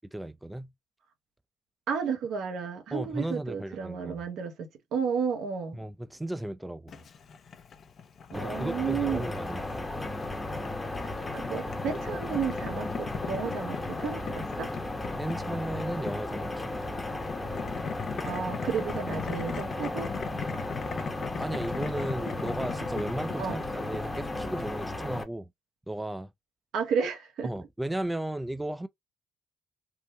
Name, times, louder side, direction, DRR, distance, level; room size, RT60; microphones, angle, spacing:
voice 1, 0.1-0.7 2.9-4.2 5.7-7.0 8.3-9.6 15.2-16.7 21.4-25.5 25.9-26.3 27.4-28.9, right 1 dB, 10° right, 0.3 m, -35 dB
voice 2, 1.9-5.8 8.3-9.3 11.0-14.7 18.2-20.1 23.4-23.6 26.7-27.5, right 6 dB, 80° right, 0.9 m, -32 dB
Boiling, 6.9-25.0, left 6 dB, 55° left, 0.6 m, -40 dB
sound 1, 8.3-25.2, left 2 dB, 20° left, 0.8 m, -35 dB
3.6 x 2.1 x 2.8 m
cardioid pair, 90°, 0 cm